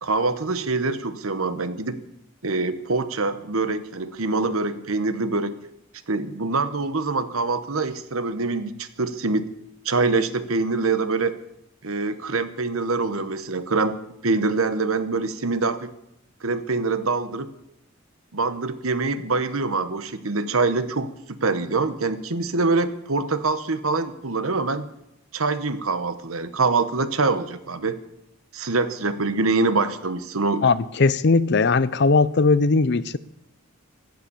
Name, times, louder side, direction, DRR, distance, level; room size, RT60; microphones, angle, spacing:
voice 1, 0.0-2.0 2.4-5.6 6.1-9.5 9.8-11.4 11.8-15.9 16.4-17.5 18.3-24.9 25.3-28.0 28.5-30.6, right 3 dB, 80° right, 1.2 m, -24 dB
voice 2, 30.6-33.2, left 4 dB, 50° left, 0.6 m, -19 dB
15.5 x 11.5 x 7.1 m
head